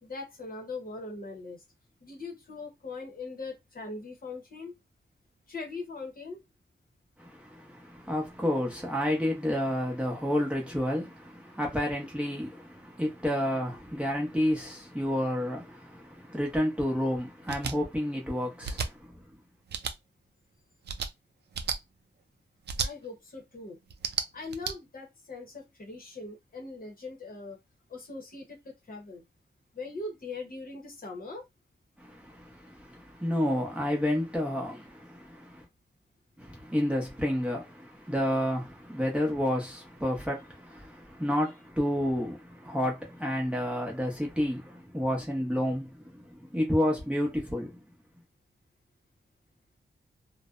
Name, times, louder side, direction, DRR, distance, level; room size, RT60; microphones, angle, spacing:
voice 1, 0.0-1.6 2.0-4.7 5.5-6.4 22.8-23.8 24.3-27.6 27.9-29.2 29.7-31.5, left 3 dB, 50° left, 0.9 m, -41 dB
voice 2, 7.2-19.1 32.0-35.7 36.4-47.8, equal, 5° right, 0.8 m, -30 dB
sound 1, 17.5-17.7 18.6-18.9 19.7-19.9 20.8-21.1 21.5-21.8 22.7-22.9 23.9-24.7, right 6 dB, 60° right, 0.4 m, -32 dB
2.6 x 2.1 x 2.4 m
wide cardioid pair, 145°, 20 cm